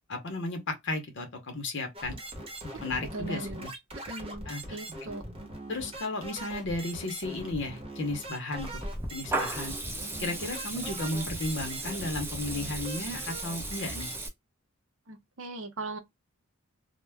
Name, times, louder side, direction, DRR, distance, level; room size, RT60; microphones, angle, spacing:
voice 1, 0.1-2.2 2.8-3.7 4.5-4.8 5.7-9.8 10.2-14.1, left 2 dB, 60° left, 0.7 m, -34 dB
sound 1, 1.9-14.2, right 1 dB, 25° right, 0.9 m, -42 dB
voice 2, 3.1-3.7 3.9-5.2 15.1-16.0, right 2 dB, 65° right, 0.7 m, -39 dB
Water tap faucet / Liquid, 8.6-14.3, right 2 dB, 10° right, 0.5 m, -36 dB
2.1 x 2.1 x 3.3 m
head